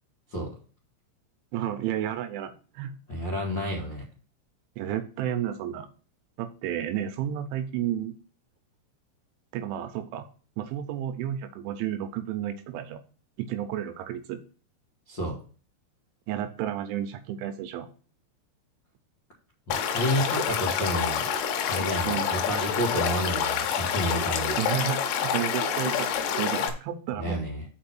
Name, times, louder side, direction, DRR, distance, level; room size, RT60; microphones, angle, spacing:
voice 1, 1.5-3.0 4.8-5.9 6.4-8.2 9.5-10.3 10.6-13.0 13.4-14.4 16.3-17.9 22.0-22.4 24.6-27.4, right 10 dB, 80° right, 8 dB, 3.0 m, -32 dB
voice 2, 3.1-4.0 15.1-15.4 19.7-24.6 27.1-27.6, equal, 60° left, -4 dB, 1.2 m, -30 dB
Stream / Liquid, 19.7-26.7, left 7 dB, 80° left, 3.3 m, -27 dB
6.2 x 5.3 x 5.9 m, 0.39 s
omnidirectional pair, 5.8 m